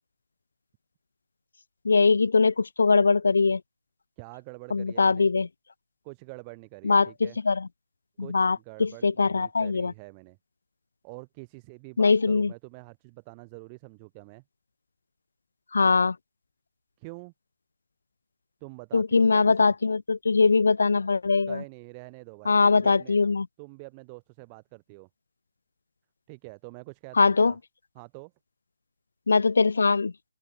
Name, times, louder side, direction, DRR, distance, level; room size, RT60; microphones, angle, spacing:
voice 1, 1.8-3.6 4.7-5.5 6.8-7.7 8.2-9.9 12.0-12.5 15.7-16.2 18.9-21.6 22.5-23.5 27.2-27.5 29.3-30.1, left 4 dB, 60° left, 0.5 m, -22 dB
voice 2, 4.2-5.3 6.0-7.4 8.2-10.4 11.0-14.4 17.0-17.3 18.6-19.7 21.5-23.2 23.6-25.1 26.3-27.6 27.9-28.3, right 30 dB, 20° right, 1.0 m, -46 dB
open air
figure-of-eight pair, 145°, 0 cm